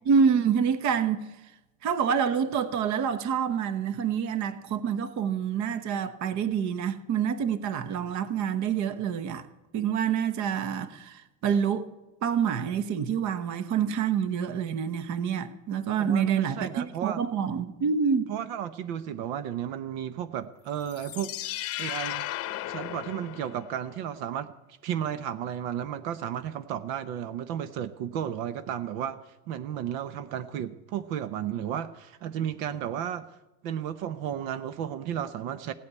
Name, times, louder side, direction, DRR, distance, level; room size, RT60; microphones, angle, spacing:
voice 1, 0.0-1.3 1.8-9.5 9.7-11.9 12.2-18.3, right 7 dB, 45° right, 1.1 m, -27 dB
voice 2, 16.0-17.2 18.3-22.3 22.7-33.3 33.6-35.7, right 9 dB, 75° right, 1.0 m, -33 dB
sound 1, 20.8-23.9, left 14 dB, 35° left, 0.8 m, -35 dB
17.0 x 8.6 x 9.6 m
cardioid pair, 145°, 40 cm